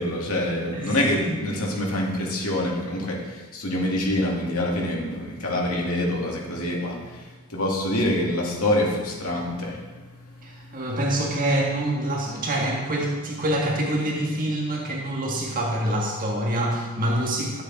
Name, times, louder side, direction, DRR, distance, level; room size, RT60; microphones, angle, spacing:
voice 1, 0.0-10.9, left 1 dB, 75° left, -2 dB, 2.4 m, -26 dB
voice 2, 10.4-17.6, right 1 dB, 40° right, -2 dB, 1.6 m, -26 dB
12.5 x 8.4 x 4.1 m, 1.3 s
head